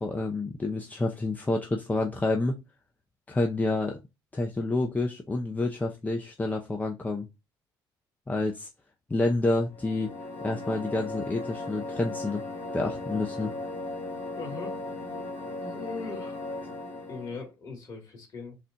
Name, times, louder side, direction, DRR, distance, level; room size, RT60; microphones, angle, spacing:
voice 1, 0.0-2.6 3.3-4.0 4.3-7.3 8.3-8.7 9.1-10.1 10.4-12.4 12.7-13.5, left 2 dB, 20° left, 0.7 m, -28 dB
sound 1, 9.7-17.5, left 2 dB, 65° left, 2.2 m, -37 dB
voice 2, 14.3-14.8 15.4-16.4 17.1-18.6, left 4 dB, 45° left, 2.5 m, -40 dB
4.1 x 2.4 x 4.1 m
supercardioid pair, 80°, 9 cm